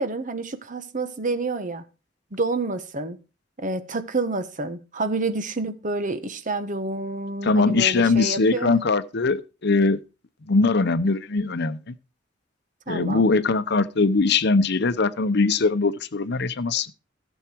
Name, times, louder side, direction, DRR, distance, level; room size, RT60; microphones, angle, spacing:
voice 1, 0.0-1.8 2.3-3.2 3.6-8.7 10.5-10.7 12.9-13.3, right 3 dB, 45° right, 1.3 m, -28 dB
voice 2, 7.4-10.0 10.5-11.9 12.9-16.9, left 3 dB, 65° left, 0.8 m, -21 dB
15.5 x 7.1 x 4.6 m
head